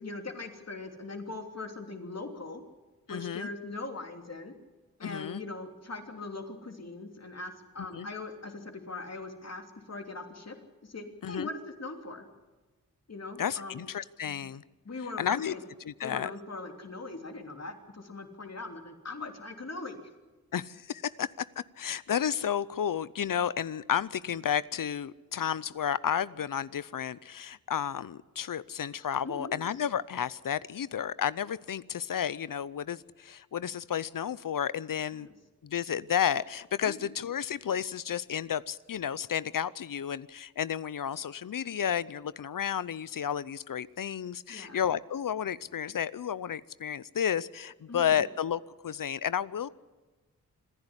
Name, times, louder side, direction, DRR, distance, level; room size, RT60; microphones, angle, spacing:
voice 1, 0.0-2.6 3.1-4.5 5.0-10.6 10.8-12.2 13.1-13.8 14.8-15.6 16.0-20.0 29.2-29.5 35.2-35.3 36.8-37.1 44.5-44.8 47.9-48.2, left 3 dB, 45° left, 4 dB, 3.1 m, -41 dB
voice 2, 3.1-3.5 5.0-5.4 7.9-8.1 11.2-11.5 13.4-14.6 15.2-15.5 15.9-16.3 20.5-21.3 21.8-35.3 35.6-49.7, left 9 dB, 65° left, 19 dB, 0.7 m, -32 dB
26.5 x 11.0 x 9.8 m, 1.2 s
cardioid pair, 45°, 35 cm